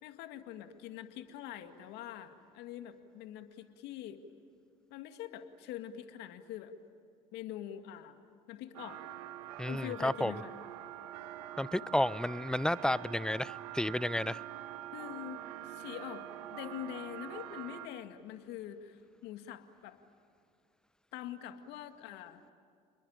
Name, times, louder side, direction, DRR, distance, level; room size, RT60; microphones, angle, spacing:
voice 1, 0.0-4.2 4.9-6.7 7.3-8.2 8.5-9.0 9.7-10.5 14.9-20.0 21.1-22.4, left 11 dB, 70° left, 7 dB, 2.1 m, -44 dB
sound 1, 8.7-17.9, right 12 dB, 85° right, 1.4 m, -45 dB
voice 2, 9.6-10.3 11.6-14.4, left 1 dB, 5° left, 19 dB, 0.6 m, -32 dB
30.0 x 21.5 x 9.0 m, 2.3 s
hypercardioid pair, 75°, 18 cm